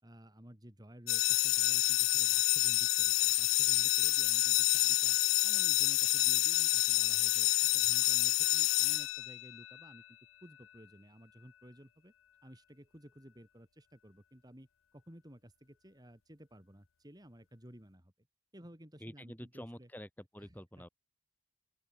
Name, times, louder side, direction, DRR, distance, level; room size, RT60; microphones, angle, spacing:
voice 1, 0.0-12.1 12.4-18.1 18.5-19.9 20.4-20.8, equal, 20° right, 3.2 m, -55 dB
sound 1, 1.1-9.7, left 18 dB, 85° left, 0.5 m, -28 dB
voice 2, 19.0-20.9, equal, 10° left, 7.8 m, -48 dB
open air
head